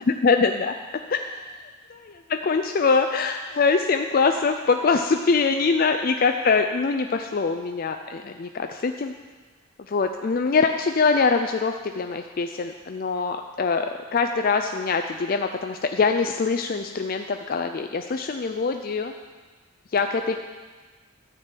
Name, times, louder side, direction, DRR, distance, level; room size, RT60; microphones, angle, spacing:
voice 1, 0.2-0.7 1.1-1.4 1.9-9.1 9.9-19.1 19.9-20.4, left 4 dB, 40° left, 6 dB, 0.4 m, -23 dB
13.0 x 4.5 x 7.6 m, 1.4 s
head